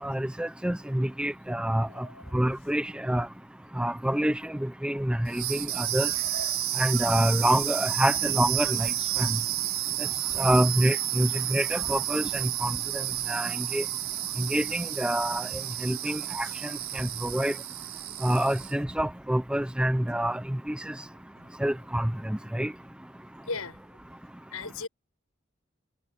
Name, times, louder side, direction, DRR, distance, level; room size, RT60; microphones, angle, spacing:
voice 1, 0.0-2.1 2.3-3.3 3.8-6.1 6.7-9.4 10.4-13.8 14.4-15.5 15.8-17.5 18.2-20.9 21.6-22.7, right 1 dB, 5° right, 0.5 m, -27 dB
voice 2, 1.9-2.2 23.5-23.8 24.5-24.9, left 4 dB, 80° left, 6.1 m, -36 dB
sound 1, 5.3-18.8, right 14 dB, 65° right, 5.1 m, -31 dB
head